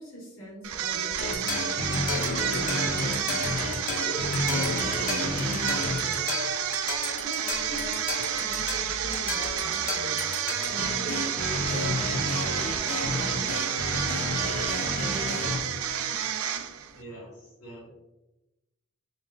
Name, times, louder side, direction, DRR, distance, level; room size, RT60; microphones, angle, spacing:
voice 1, 0.0-3.5 4.0-6.3 7.2-7.4 7.6-14.9 15.2-15.5, equal, 60° left, -6 dB, 1.5 m, -42 dB
sound 1, 0.6-17.0, right 9 dB, 70° right, 0.4 m, -30 dB
sound 2, 1.2-15.6, left 2 dB, 40° left, 0.7 m, -31 dB
sound 3, 7.5-13.9, equal, ahead, 0.6 m, -46 dB
voice 2, 16.9-17.9, right 1 dB, 80° left, -6 dB, 1.4 m, -44 dB
3.3 x 2.8 x 3.9 m, 0.98 s
head